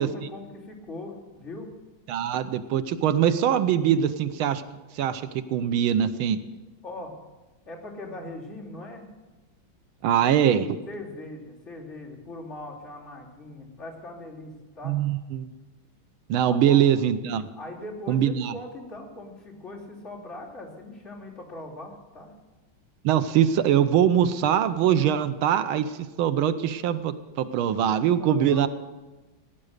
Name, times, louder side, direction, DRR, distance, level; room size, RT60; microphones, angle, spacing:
voice 1, 0.0-1.7 6.8-7.1 7.7-9.1 10.9-15.0 16.4-16.8 17.6-22.3 28.2-28.7, left 2 dB, 35° left, -4 dB, 3.3 m, -40 dB
voice 2, 2.1-4.6 4.9-5.2 5.5-6.4 10.0-10.8 14.8-15.4 16.3-17.4 18.1-18.6 23.0-28.7, right 9 dB, 85° right, 11 dB, 1.6 m, -22 dB
17.0 x 10.0 x 6.6 m, 1.2 s
omnidirectional pair, 2.2 m